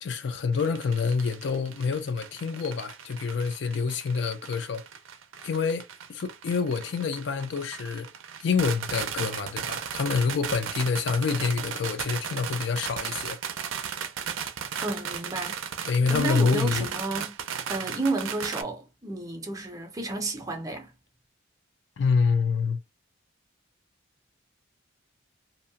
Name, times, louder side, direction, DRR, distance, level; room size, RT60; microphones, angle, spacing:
voice 1, 0.0-4.8 5.4-5.8 6.1-8.1 8.4-13.4 15.8-16.9 22.0-22.8, left 5 dB, 65° left, 0.4 m, -27 dB
sound 1, 0.5-18.6, right 8 dB, 85° right, 0.4 m, -36 dB
voice 2, 14.8-15.6 16.1-17.4 17.7-20.9, right 2 dB, 15° right, 0.5 m, -31 dB
2.7 x 2.1 x 2.6 m
head